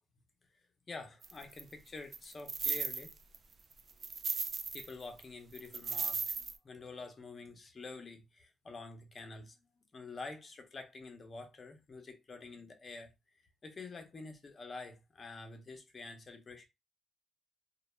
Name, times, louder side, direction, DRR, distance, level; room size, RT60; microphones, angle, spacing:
voice 1, 0.9-3.1 4.7-9.5 9.9-13.1 13.6-16.7, left 3 dB, 35° left, 0.6 m, -48 dB
sound 1, 1.2-1.6 2.1-3.4 3.7-4.9 5.2-5.3 5.5-6.6, right 5 dB, 45° right, 0.3 m, -36 dB
2.1 x 2.0 x 3.1 m
cardioid pair, 90°, 0 cm